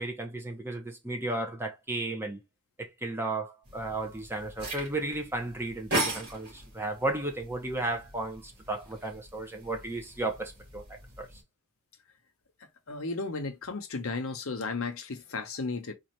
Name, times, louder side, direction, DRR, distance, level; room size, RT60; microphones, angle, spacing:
voice 1, 0.0-2.4 2.8-11.3, right 2 dB, 10° right, 0.7 m, -34 dB
sound 1, 3.7-11.4, right 1 dB, 50° right, 2.3 m, -38 dB
voice 2, 12.9-15.9, left 3 dB, 65° left, 0.7 m, -34 dB
4.1 x 2.5 x 3.0 m
head